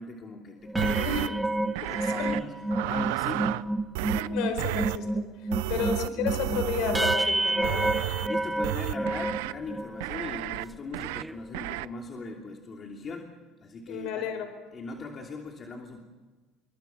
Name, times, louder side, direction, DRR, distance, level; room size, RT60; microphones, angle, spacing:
voice 1, 0.0-1.2 1.7-2.5 2.8-3.6 5.5-5.9 6.1-6.4 8.2-13.3 13.6-14.3 14.7-16.0, left 4 dB, 35° left, 1 dB, 3.0 m, -40 dB
sound 1, 0.6-10.1 10.6-10.7 11.0-11.3, right 2 dB, 5° right, 1.1 m, -30 dB
sound 2, 0.8-1.3 1.8-2.4 2.7-3.6 3.9-4.3 4.6-5.0 5.5-7.2 7.6-8.3 8.6-9.5 10.0-10.6 10.9-11.2 11.5-11.9, right 18 dB, 90° right, 0.6 m, -32 dB
voice 2, 1.0-1.3 2.2-2.3 4.1-7.9 13.9-14.5, left 6 dB, 70° left, 8 dB, 4.6 m, -32 dB
27.5 x 23.0 x 5.8 m, 1.3 s
supercardioid pair, 115°, 0 cm